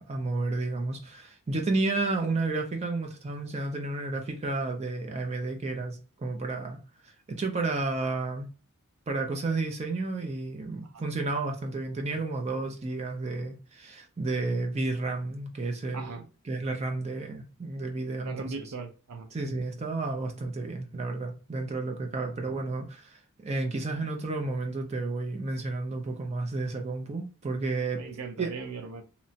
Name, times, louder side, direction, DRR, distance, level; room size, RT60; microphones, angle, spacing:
voice 1, 0.0-8.5 9.1-16.1 16.5-18.5 19.3-28.0 28.4-28.5, right 3 dB, 30° right, 0.4 m, -31 dB
voice 2, 15.9-16.2 18.2-19.3 27.9-29.0, right 4 dB, 90° right, 0.5 m, -38 dB
2.9 x 2.1 x 2.7 m
head